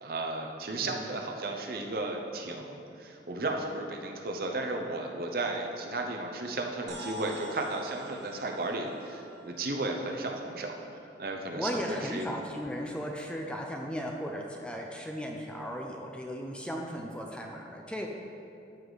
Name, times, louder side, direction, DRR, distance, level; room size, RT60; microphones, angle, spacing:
voice 1, 0.0-10.7 11.2-12.3, right 2 dB, 55° right, 2 dB, 0.8 m, -34 dB
sound 1, 6.9-11.5, equal, 75° right, 1.4 m, -47 dB
voice 2, 11.5-18.1, equal, 5° left, 1 dB, 0.5 m, -36 dB
13.0 x 4.9 x 4.0 m, 2.7 s
head